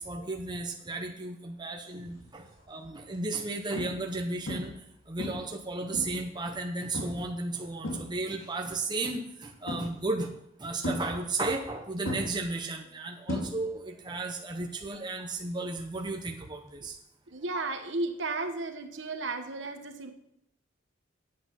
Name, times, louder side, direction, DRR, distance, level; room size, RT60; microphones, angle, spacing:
voice 1, 0.0-4.7 5.1-10.3 10.6-16.9 17.5-17.6, right 2 dB, 20° right, 3 dB, 0.8 m, -34 dB
sound 1, 2.1-2.4 3.0-3.2 3.8-4.2 4.5-4.9 5.2-6.3 6.9-7.3 7.6-8.5 9.7-10.2 10.8-11.7 12.0-13.9 14.2-14.6 16.7-16.8, left 1 dB, 80° left, 2.5 m, -36 dB
voice 2, 17.3-20.1, right 3 dB, 60° right, 7 dB, 1.1 m, -34 dB
8.5 x 8.2 x 5.7 m, 0.77 s
head